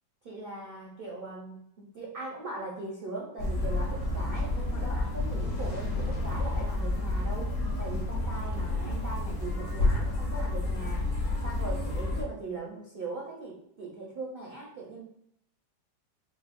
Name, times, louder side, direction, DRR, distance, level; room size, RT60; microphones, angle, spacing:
voice 1, 0.2-11.1 11.4-15.0, right 3 dB, 55° right, -3 dB, 0.6 m, -40 dB
sound 1, 3.4-12.2, left 2 dB, 50° left, 1.0 m, -30 dB
5.1 x 2.1 x 2.5 m, 0.75 s
omnidirectional pair, 1.9 m